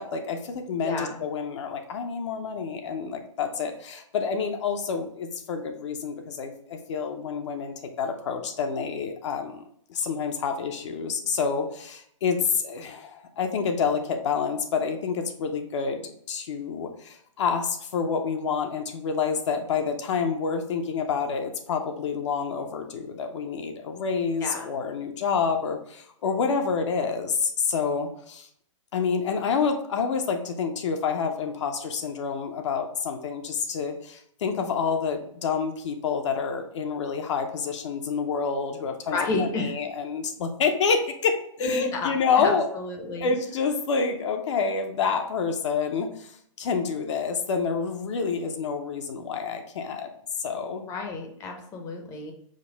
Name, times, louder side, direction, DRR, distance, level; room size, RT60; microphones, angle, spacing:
voice 1, 0.0-9.6 9.9-16.0 16.3-28.5 28.9-42.7 43.2-46.3 46.6-50.1 50.4-50.8, left 5 dB, 60° left, 4 dB, 0.6 m, -28 dB
voice 2, 0.8-1.2 24.4-24.7 39.1-39.8 41.6-43.3 50.9-52.3, left 3 dB, 20° left, 3 dB, 0.6 m, -31 dB
5.1 x 2.1 x 3.9 m, 0.66 s
hypercardioid pair, 155°, 17 cm